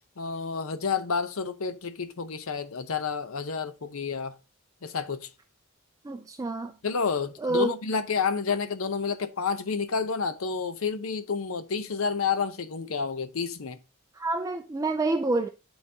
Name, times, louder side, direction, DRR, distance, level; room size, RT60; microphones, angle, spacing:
voice 1, 0.2-4.3 4.8-5.3 6.8-13.8, left 5 dB, 75° left, 0.7 m, -30 dB
voice 2, 6.0-6.8 7.4-7.8 14.1-15.5, right 2 dB, 15° right, 0.3 m, -27 dB
11.0 x 3.9 x 2.7 m
head